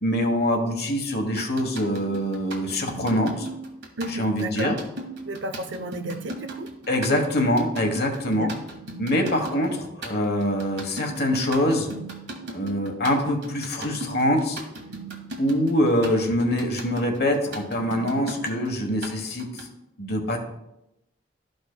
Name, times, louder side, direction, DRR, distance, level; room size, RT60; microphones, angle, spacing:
voice 1, 0.0-3.5 4.1-4.8 6.9-8.5 9.0-11.9 12.5-14.6 15.4-19.7 20.0-20.4, left 1 dB, 55° left, 4 dB, 1.2 m, -24 dB
sound 1, 1.4-19.7, right 3 dB, 60° right, 1.5 m, -37 dB
voice 2, 4.0-4.7 5.3-6.7 8.3-8.5, right 1 dB, 80° right, 9 dB, 0.7 m, -32 dB
13.5 x 5.2 x 2.2 m, 0.89 s
head